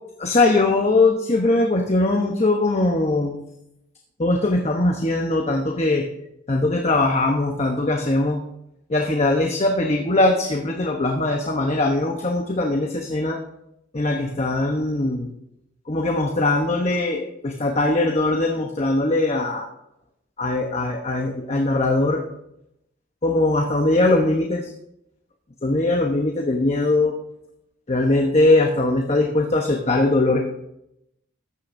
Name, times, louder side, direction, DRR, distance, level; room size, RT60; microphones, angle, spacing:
voice 1, 0.2-3.4 4.2-6.0 6.5-8.4 8.9-13.4 13.9-15.3 15.9-19.7 20.4-22.2 23.2-24.7 25.6-27.1 27.9-30.4, left 2 dB, 35° left, 2 dB, 0.9 m, -21 dB
14.5 x 10.0 x 2.7 m, 0.80 s
head